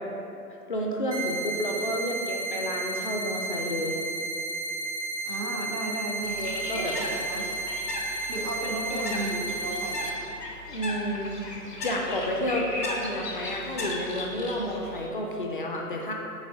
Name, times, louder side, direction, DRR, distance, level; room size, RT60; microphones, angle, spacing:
voice 1, 0.7-4.0 6.3-6.9 10.7-11.3 11.8-16.1, equal, 35° left, 0 dB, 0.5 m, -30 dB
sound 1, 1.1-10.1, right 2 dB, 25° right, 0.5 m, -33 dB
voice 2, 5.2-6.4 6.7-7.5 8.1-10.1, right 2 dB, 70° right, 1 dB, 1.3 m, -34 dB
Bird, 6.2-15.1, left 2 dB, 80° left, 1.4 m, -36 dB
8.0 x 3.1 x 5.0 m, 2.8 s
figure-of-eight pair, 130°, 47 cm